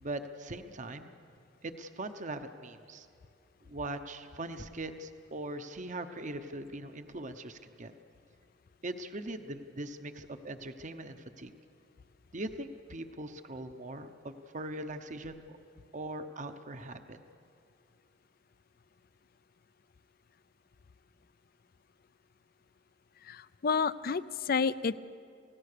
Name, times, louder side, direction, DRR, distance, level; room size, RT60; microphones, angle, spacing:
voice 1, 0.0-1.2 1.6-3.1 3.7-7.9 8.8-11.5 12.3-15.6 15.9-17.2, right 2 dB, 45° right, 8 dB, 0.9 m, -41 dB
voice 2, 23.3-25.0, left 5 dB, 55° left, 16 dB, 0.5 m, -30 dB
28.5 x 17.0 x 6.8 m, 2.5 s
head